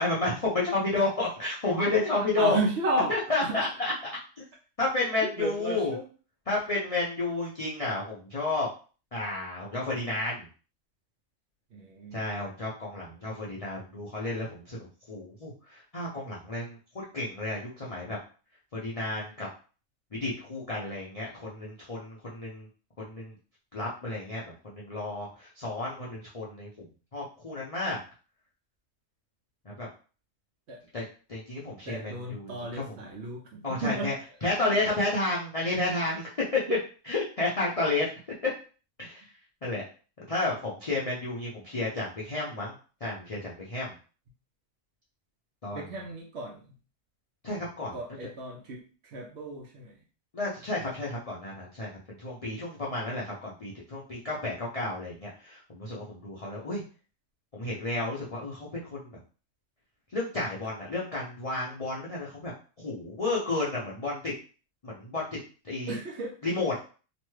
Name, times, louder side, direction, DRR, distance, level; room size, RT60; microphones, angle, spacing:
voice 1, 0.0-2.6 3.1-3.9 4.4-4.5 4.8-5.9 6.5-8.7 9.1-10.5 12.1-14.8 15.1-18.2 18.8-19.5 20.1-22.7 23.0-23.3 23.7-26.9 27.1-28.0 29.7-29.9 30.9-31.0 31.3-32.9 33.6-34.1 34.4-36.6 37.1-38.1 39.0-39.2 39.6-39.8 40.3-42.7 43.0-43.9 45.6-45.8 47.4-47.9 50.3-51.9 52.2-56.8 57.5-59.0 60.1-62.5 62.8-64.3 64.8-65.3 65.6-66.0 66.4-66.8, left 2 dB, 50° left, -5 dB, 0.4 m, -31 dB
voice 2, 2.1-3.6 5.4-6.1 11.7-12.3 30.7-30.8 31.9-34.1 36.7-36.8 45.7-46.8 47.9-50.0 50.7-50.8 65.9-66.4, right 2 dB, 60° right, 0 dB, 0.8 m, -33 dB
3.0 x 2.2 x 3.1 m, 0.37 s
omnidirectional pair, 1.5 m